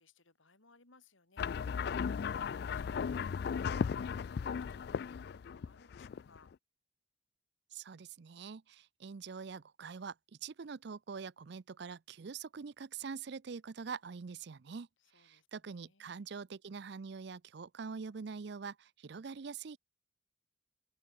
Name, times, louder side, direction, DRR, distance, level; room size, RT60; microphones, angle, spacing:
voice 1, 0.0-6.5 15.0-16.5, left 3 dB, 80° left, 3.5 m, -66 dB
sound 1, 1.4-6.6, left 6 dB, 55° left, 0.3 m, -36 dB
voice 2, 7.7-10.2 10.4-14.9 15.2-19.8, right 5 dB, 55° right, 0.5 m, -44 dB
open air
head